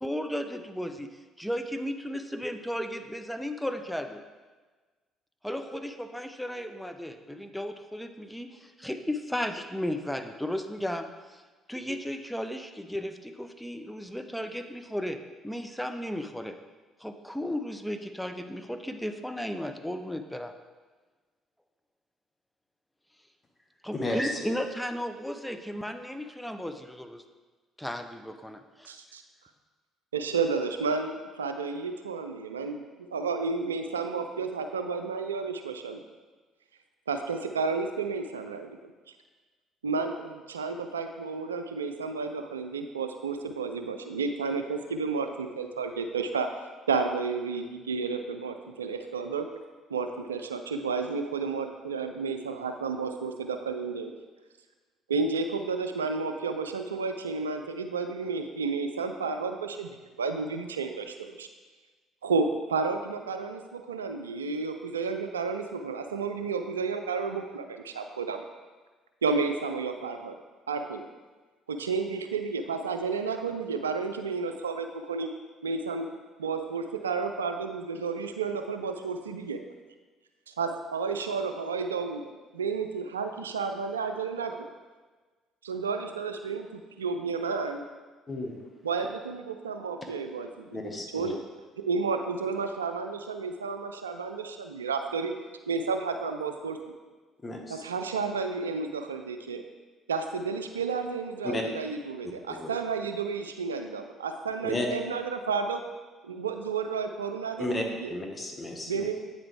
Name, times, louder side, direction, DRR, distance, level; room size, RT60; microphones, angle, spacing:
voice 1, 0.0-1.1 1.4-4.2 5.4-11.4 11.7-15.2 15.4-16.6 17.0-20.5 23.8-27.2 27.8-28.9, equal, 5° left, 7 dB, 0.6 m, -34 dB
voice 2, 23.9-24.3 88.3-88.6 90.7-91.3 97.4-97.9 101.4-101.6 102.2-102.3 102.6-102.7 104.6-104.9 107.6-109.1, left 1 dB, 25° left, 2 dB, 1.3 m, -33 dB
voice 3, 28.9-29.2 30.1-32.8 33.1-36.0 37.1-38.7 39.8-46.5 46.9-49.5 49.9-54.1 55.1-61.5 62.2-68.5 69.2-70.3 70.7-71.1 71.7-75.3 75.6-76.1 76.4-79.6 80.5-82.2 82.5-84.7 85.6-87.8 88.8-91.4 91.9-95.3 95.7-96.8 97.7-99.6 100.1-105.8 106.2-108.1 108.9-109.1, right 4 dB, 90° right, 7 dB, 0.3 m, -31 dB
8.6 x 4.0 x 3.3 m, 1.3 s
hypercardioid pair, 50°, 0 cm